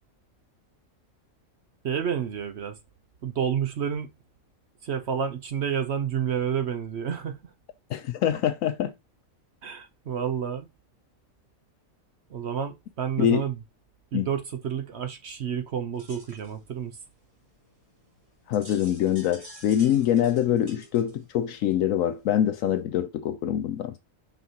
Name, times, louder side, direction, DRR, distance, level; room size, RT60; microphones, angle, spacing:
voice 1, 1.8-2.8 3.2-4.1 4.8-7.5 9.6-10.7 12.3-13.6 14.1-17.0, right 8 dB, 55° right, 0.9 m, -30 dB
voice 2, 7.9-8.9 13.2-13.4 14.1-14.3 18.5-24.0, left 10 dB, 75° left, 1.0 m, -24 dB
sound 1, 15.9-22.8, right 1 dB, 25° right, 2.4 m, -51 dB
5.9 x 5.6 x 2.8 m
omnidirectional pair, 1.5 m